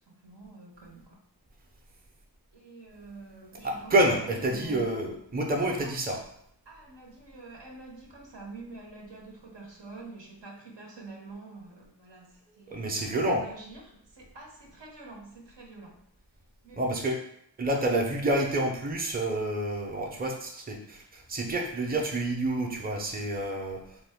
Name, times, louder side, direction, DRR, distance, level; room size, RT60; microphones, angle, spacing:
voice 1, 0.2-1.2 2.5-4.9 5.7-5.9 6.6-16.0 16.6-16.9, right 3 dB, 75° right, -1 dB, 0.9 m, -47 dB
voice 2, 3.6-6.2 12.7-13.4 16.8-17.2 17.6-24.0, right 1 dB, 20° right, 0 dB, 0.6 m, -28 dB
3.5 x 2.2 x 3.5 m, 0.71 s
wide cardioid pair, 40°, 43 cm